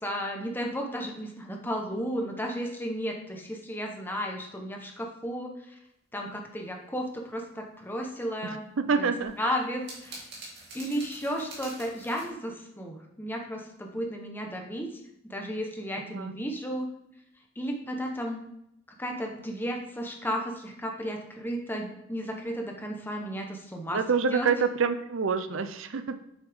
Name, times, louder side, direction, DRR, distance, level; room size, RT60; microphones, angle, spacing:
voice 1, 0.0-5.7 6.1-9.1 9.4-10.1 10.7-14.9 15.3-16.9 17.6-18.4 19.0-24.5, equal, 10° left, 1 dB, 1.1 m, -34 dB
voice 2, 8.8-9.5 16.1-16.3 23.9-26.2, right 5 dB, 75° right, 10 dB, 0.5 m, -27 dB
sound 1, 9.2-12.3, right 2 dB, 55° right, 2.6 m, -45 dB
8.4 x 6.3 x 3.6 m, 0.80 s
head